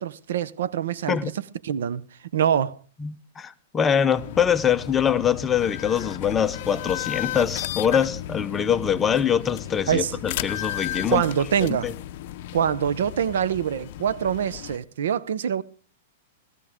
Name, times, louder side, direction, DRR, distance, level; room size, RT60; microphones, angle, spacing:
voice 1, 0.0-1.3 1.6-2.0 2.3-2.8 9.9-10.2 11.1-11.9 12.5-15.6, right 9 dB, 80° right, 0.8 m, -24 dB
voice 2, 3.0-11.2 11.6-11.9, left 8 dB, 15° left, 0.7 m, -23 dB
sound 1, 4.2-14.8, left 13 dB, 50° left, 0.6 m, -34 dB
17.5 x 13.5 x 3.7 m
supercardioid pair, 155°, 0 cm